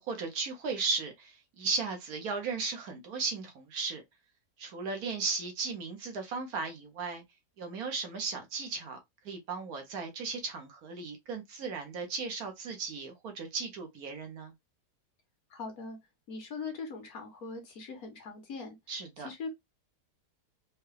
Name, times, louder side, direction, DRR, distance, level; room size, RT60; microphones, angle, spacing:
voice 1, 0.0-4.0 4.6-7.2 7.6-9.0 9.2-14.5 18.9-19.3, right 4 dB, 65° right, 1.3 m, -36 dB
voice 2, 15.5-16.0 16.3-18.8 19.2-19.5, left 4 dB, 65° left, 1.5 m, -41 dB
4.5 x 2.3 x 3.3 m
omnidirectional pair, 1.7 m